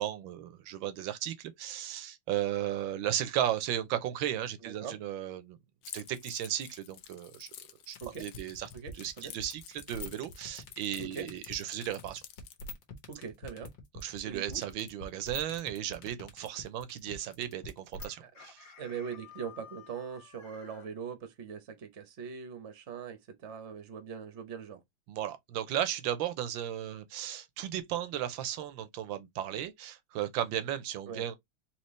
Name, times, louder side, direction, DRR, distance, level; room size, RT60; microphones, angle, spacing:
voice 1, 0.0-5.6 5.9-7.5 7.9-8.7 8.9-12.2 13.9-18.7 25.1-31.4, right 11 dB, 80° right, 1.4 m, -35 dB
voice 2, 4.6-5.0 8.0-8.3 8.7-9.3 11.0-11.3 13.1-13.7 14.2-14.6 18.2-18.4 18.8-24.8 31.1-31.3, right 6 dB, 50° right, 0.9 m, -41 dB
Keys jangling, 5.8-12.6, left 11 dB, 85° left, 1.5 m, -50 dB
sound 1, 7.9-18.1, left 3 dB, 65° left, 1.8 m, -45 dB
Chicken rooster, 18.0-20.9, left 7 dB, 45° left, 0.7 m, -53 dB
4.4 x 3.1 x 3.1 m
omnidirectional pair, 2.2 m